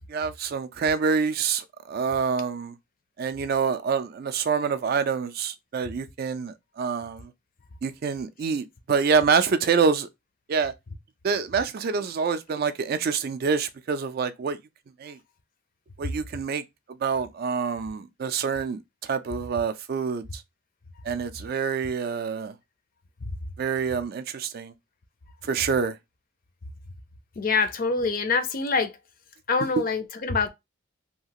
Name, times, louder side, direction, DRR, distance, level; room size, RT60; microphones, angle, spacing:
voice 1, 0.1-2.7 3.2-7.3 7.8-10.1 10.5-10.7 11.2-14.6 15.0-15.2 16.0-16.6 17.0-20.4 21.0-22.5 23.6-24.7 25.4-26.0, right 5 dB, 45° right, 0.3 m, -26 dB
voice 2, 27.4-28.9 29.5-30.5, left 4 dB, 40° left, 0.4 m, -25 dB
2.8 x 2.3 x 2.8 m
head